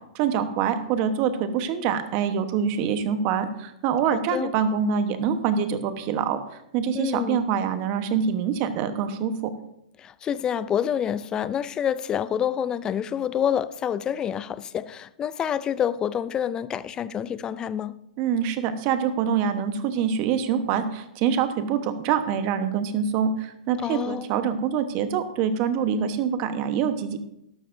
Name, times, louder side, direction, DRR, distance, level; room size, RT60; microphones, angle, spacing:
voice 1, 0.1-6.4 6.7-9.5 18.2-27.2, right 7 dB, 35° right, 1.1 m, -25 dB
voice 2, 4.1-4.5 6.9-7.5 10.0-18.0 23.8-24.2, left 9 dB, 20° left, 0.4 m, -27 dB
12.5 x 12.0 x 2.7 m
hypercardioid pair, 150°, 4 cm